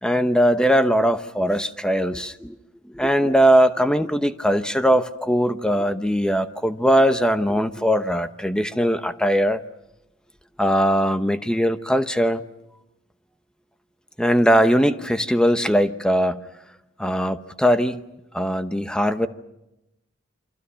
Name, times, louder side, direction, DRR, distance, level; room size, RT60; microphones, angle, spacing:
voice 1, 0.0-2.6 2.9-9.6 10.6-12.4 14.2-16.4 17.0-18.0 18.3-19.3, equal, 5° left, 9 dB, 0.9 m, -20 dB
28.5 x 25.0 x 5.8 m, 0.88 s
head